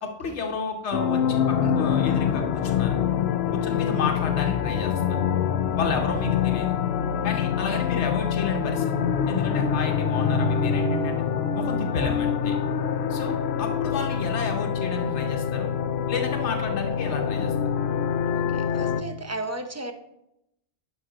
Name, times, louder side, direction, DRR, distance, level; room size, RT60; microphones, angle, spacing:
voice 1, 0.0-3.0 3.5-5.2 5.8-6.7 7.2-8.9 9.3-11.2 11.5-12.6 13.1-15.7 16.1-17.5, left 4 dB, 85° left, 2 dB, 1.1 m, -31 dB
sound 1, 0.9-19.0, left 7 dB, 70° left, 0.8 m, -25 dB
voice 2, 18.3-19.9, right 2 dB, 20° right, 6 dB, 0.5 m, -35 dB
11.0 x 4.9 x 3.9 m, 0.82 s
omnidirectional pair, 1.1 m